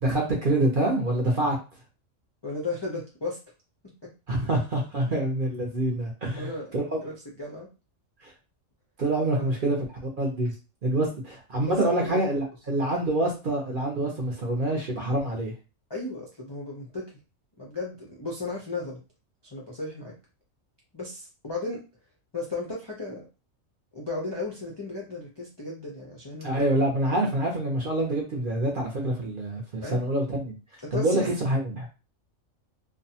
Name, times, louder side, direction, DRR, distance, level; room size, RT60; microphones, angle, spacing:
voice 1, 0.0-1.6 4.3-6.8 8.2-8.3 9.0-10.5 10.8-15.5 26.4-30.6 30.9-31.9, right 1 dB, 50° right, 0 dB, 0.7 m, -26 dB
voice 2, 2.4-3.4 4.0-4.1 6.3-6.8 7.0-7.1 7.4-7.7 9.4-9.5 11.6-12.4 15.9-17.1 17.6-19.0 19.5-20.1 20.9-21.8 22.3-23.2 23.9-26.5 29.8-30.0 30.8-31.3, left 2 dB, 45° left, -4 dB, 0.3 m, -35 dB
2.6 x 2.2 x 2.7 m, 0.32 s
omnidirectional pair, 1.5 m